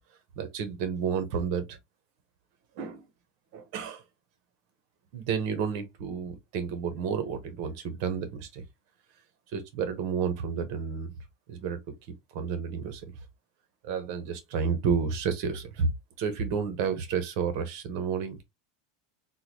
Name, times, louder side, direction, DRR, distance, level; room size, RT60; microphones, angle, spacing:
voice 1, 0.4-1.8 2.8-3.1 3.5-4.0 5.1-8.6 9.5-11.1 11.5-11.8 12.3-13.0 13.8-15.9 16.2-18.4, right 6 dB, 50° right, 0.9 m, -31 dB
3.8 x 2.2 x 3.0 m
supercardioid pair, 165°, 0 cm